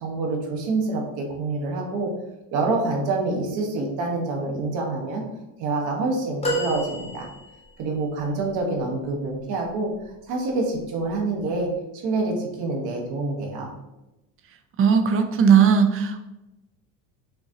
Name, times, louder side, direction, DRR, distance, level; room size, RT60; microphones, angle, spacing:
voice 1, 0.0-2.1 2.5-5.2 5.6-7.3 7.8-9.9 10.3-11.7 12.0-13.7, right 3 dB, 60° right, 0 dB, 1.3 m, -26 dB
sound 1, 6.4-7.8 8.6-8.7, equal, 15° left, 1.0 m, -29 dB
voice 2, 14.8-16.2, right 7 dB, 35° right, 7 dB, 0.5 m, -17 dB
5.9 x 2.5 x 2.8 m, 0.97 s
supercardioid pair, 105°, 41 cm